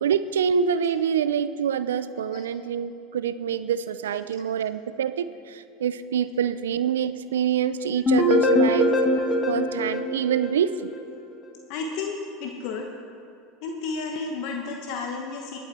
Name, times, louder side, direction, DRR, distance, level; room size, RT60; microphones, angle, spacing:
voice 1, 0.0-8.9 9.5-10.9, right 8 dB, 85° right, 14 dB, 0.4 m, -26 dB
sound 1, 8.1-11.0, left 1 dB, 20° left, 1.8 m, -22 dB
voice 2, 11.7-12.9 13.6-15.6, left 4 dB, 60° left, 2 dB, 1.1 m, -32 dB
18.5 x 8.1 x 4.3 m, 2.5 s
hypercardioid pair, 95°, 0 cm